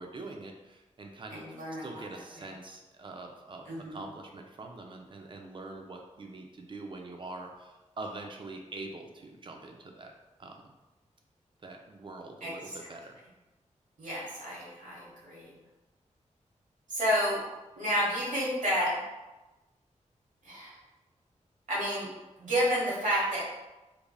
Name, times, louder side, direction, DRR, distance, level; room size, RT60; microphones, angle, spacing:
voice 1, 0.0-1.4 1.8-10.1 10.4-10.7 11.6-13.2, right 2 dB, 40° right, 2 dB, 0.4 m, -44 dB
voice 2, 1.3-2.0 3.6-4.0 12.4-12.7 14.0-15.6 16.9-17.4 17.8-19.0 20.4-20.7 21.7-22.1 22.4-23.4, equal, 80° right, -6 dB, 1.1 m, -30 dB
3.2 x 2.4 x 2.2 m, 1.1 s
wide cardioid pair, 120°, 13 cm